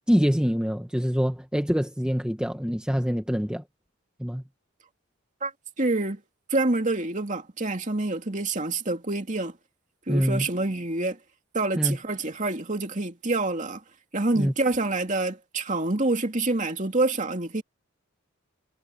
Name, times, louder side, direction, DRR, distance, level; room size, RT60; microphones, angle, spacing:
voice 1, 0.1-3.6 4.2-4.4 10.1-10.5 11.7-12.0 14.3-14.5, equal, 5° right, 1.4 m, -25 dB
voice 2, 5.8-6.2 6.5-9.6 10.1-11.2 11.5-13.8 14.1-17.6, right 2 dB, 35° right, 2.6 m, -27 dB
head